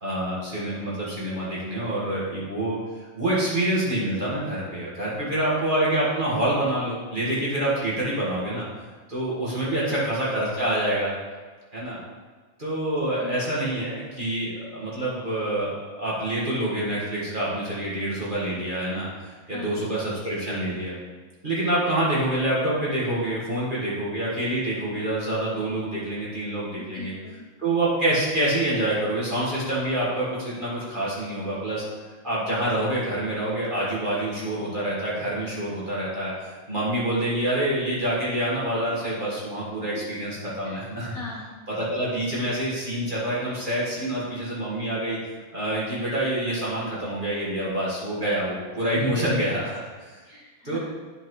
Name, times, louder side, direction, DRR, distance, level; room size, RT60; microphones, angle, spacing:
voice 1, 0.0-2.8 3.1-8.6 9.1-11.1 11.7-12.0 12.6-19.1 19.5-20.9 21.4-27.1 27.6-31.8 32.2-41.1 41.7-45.2 45.5-50.2 50.6-50.8, right 1 dB, 25° right, -7 dB, 1.4 m, -26 dB
voice 2, 9.7-10.0 13.1-13.4 19.4-19.9 26.7-27.4 39.9-40.2 40.6-41.7 48.9-49.2 50.2-50.8, left 5 dB, 60° left, -3 dB, 1.0 m, -39 dB
9.7 x 5.7 x 3.1 m, 1.4 s
omnidirectional pair, 2.4 m